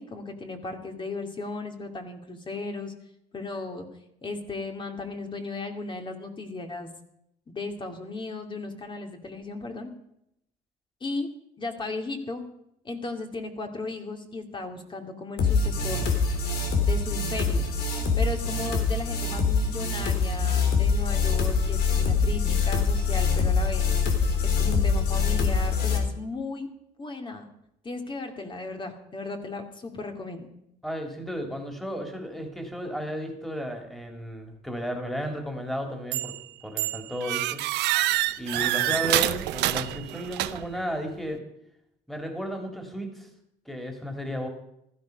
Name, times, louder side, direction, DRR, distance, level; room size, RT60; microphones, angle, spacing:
voice 1, 0.0-2.9 3.3-3.9 4.2-6.9 7.5-9.9 11.0-11.3 11.6-12.4 12.8-16.1 16.8-17.7 18.2-23.9 24.4-26.7 27.0-27.4 27.8-30.5, left 3 dB, 30° left, 4 dB, 2.7 m, -35 dB
Future Bass Loop, 15.4-26.0, left 5 dB, 75° left, 3.4 m, -24 dB
voice 2, 30.8-36.3 36.6-37.6 38.4-41.4 42.1-43.3 43.6-44.5, equal, ahead, 3 dB, 3.3 m, -33 dB
sound 1, 36.1-36.4 36.8-40.8, right 16 dB, 85° right, 0.7 m, -27 dB
15.5 x 14.0 x 5.3 m, 0.78 s
cardioid pair, 110°, 17 cm